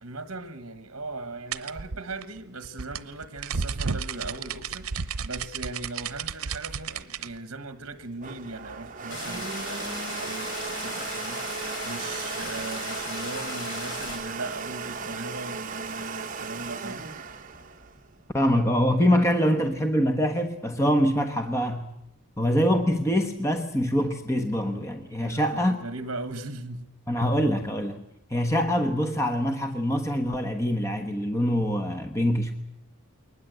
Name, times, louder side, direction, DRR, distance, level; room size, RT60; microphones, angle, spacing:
voice 1, 0.0-4.9 5.2-17.1 25.2-26.9, right 2 dB, 60° right, 1.5 m, -38 dB
sound 1, 1.5-7.3, right 5 dB, 80° right, 0.8 m, -32 dB
Domestic sounds home sounds, 7.9-18.6, right 5 dB, 35° right, 1.3 m, -36 dB
sound 2, 9.1-14.2, left 3 dB, 65° left, 5.7 m, -37 dB
voice 2, 18.3-21.9 22.4-25.8 27.1-28.0 28.3-32.5, equal, 15° left, 1.2 m, -24 dB
22.0 x 19.5 x 8.1 m
head